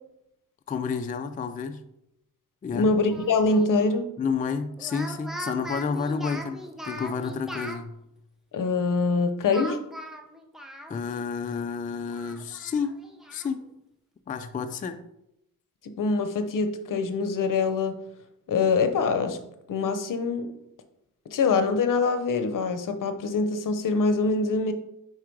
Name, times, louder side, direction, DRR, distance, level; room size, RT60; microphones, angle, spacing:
voice 1, 0.7-1.8 2.6-2.9 4.2-8.0 10.9-13.0 13.3-13.7 14.3-15.0, left 5 dB, 25° left, 0.3 m, -30 dB
voice 2, 2.7-4.0 8.5-9.8 15.8-18.0 18.5-19.4 19.7-20.5 21.3-24.7, left 4 dB, 65° left, 0.8 m, -24 dB
Speech, 3.1-3.7 4.8-7.8 9.5-11.2 11.6-11.7 12.1-13.5, right 1 dB, ahead, 0.7 m, -39 dB
4.9 x 4.6 x 4.5 m
cardioid pair, 100°, 34 cm